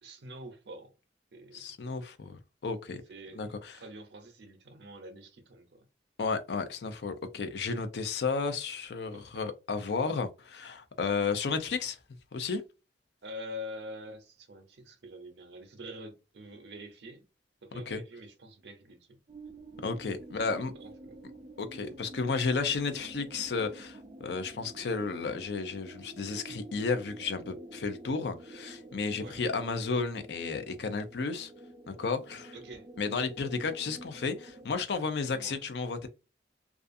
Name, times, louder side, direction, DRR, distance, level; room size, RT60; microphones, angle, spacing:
voice 1, 0.0-0.9 1.3-1.7 3.1-5.9 9.1-9.4 13.2-17.2 17.6-19.2 20.8-21.2 29.2-29.4 32.5-32.9 35.3-35.6, left 1 dB, 75° right, 0.6 m, -46 dB
voice 2, 1.5-3.0 3.3-3.8 6.2-12.0 12.3-12.6 17.7-18.0 19.8-20.7 21.6-31.5 31.9-32.6 33.0-36.1, left 4 dB, 70° left, 0.5 m, -33 dB
sound 1, 19.3-34.7, right 1 dB, 30° right, 0.3 m, -49 dB
2.4 x 2.4 x 2.5 m
head